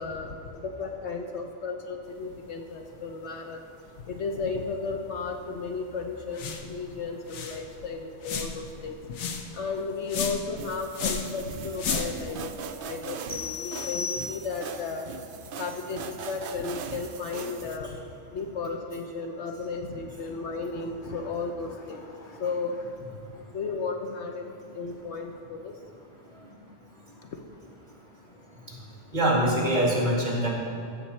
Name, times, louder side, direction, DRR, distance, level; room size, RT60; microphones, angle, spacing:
voice 1, 0.0-3.6 4.1-9.0 9.5-12.5 12.8-15.0 15.6-17.9 18.3-22.8 23.5-25.7, left 4 dB, 65° left, 4 dB, 1.0 m, -34 dB
sound 1, 6.3-6.7 7.0-7.1 7.3-7.6 8.2-8.7 9.1-9.5 10.1-10.5 10.9-11.3 11.8-12.3, left 6 dB, 85° left, 1.3 m, -32 dB
sound 2, 10.6-17.8, right 6 dB, 55° right, 0.6 m, -40 dB
sound 3, 13.3-14.8, left 5 dB, 10° left, 0.8 m, -35 dB
voice 2, 29.1-30.5, right 1 dB, 35° right, -4 dB, 2.5 m, -23 dB
15.5 x 6.9 x 4.3 m, 2.6 s
omnidirectional pair, 1.4 m